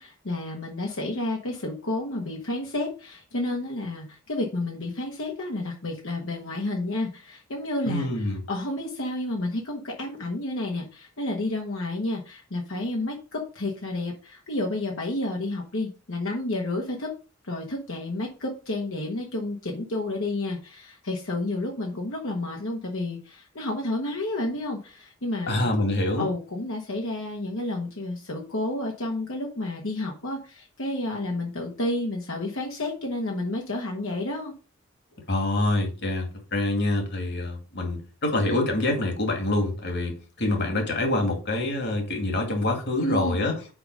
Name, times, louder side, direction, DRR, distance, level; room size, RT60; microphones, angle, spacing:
voice 1, 0.0-17.1 17.4-25.7 26.1-34.5 43.0-43.4, left 2 dB, 80° left, 1.4 m, -30 dB
voice 2, 7.8-8.4 25.5-26.3 35.3-43.6, left 2 dB, 55° left, 2.2 m, -26 dB
5.9 x 5.0 x 5.3 m
head